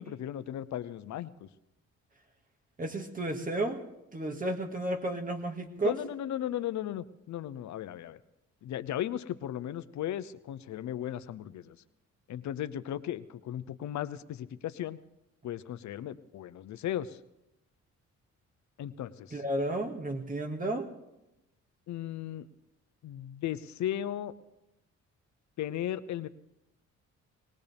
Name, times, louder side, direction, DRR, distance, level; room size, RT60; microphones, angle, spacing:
voice 1, 0.0-1.5 5.8-8.2 8.6-11.8 12.3-15.0 15.4-17.2 18.8-19.4 21.9-22.5 23.0-24.3 25.6-26.3, left 11 dB, 70° left, 14 dB, 0.8 m, -36 dB
voice 2, 2.8-3.8 4.1-6.0 19.3-20.9, right 1 dB, 25° right, 3 dB, 2.1 m, -32 dB
20.0 x 18.5 x 3.5 m, 0.91 s
cardioid pair, 90°, 30 cm